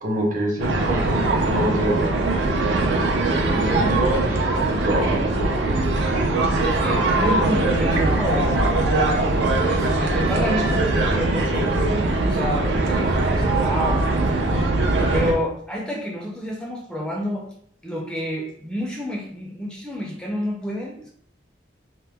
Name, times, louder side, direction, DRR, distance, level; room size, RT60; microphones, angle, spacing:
voice 1, 0.0-2.0 3.5-5.2, right 1 dB, 50° right, 0 dB, 0.8 m, -25 dB
sound 1, 0.6-15.3, right 2 dB, 85° right, 0.5 m, -21 dB
voice 2, 6.6-8.6 9.6-11.7 12.2-14.1 15.1-17.5 17.8-21.1, equal, 5° left, -2 dB, 0.4 m, -29 dB
2.9 x 2.1 x 3.4 m, 0.66 s
head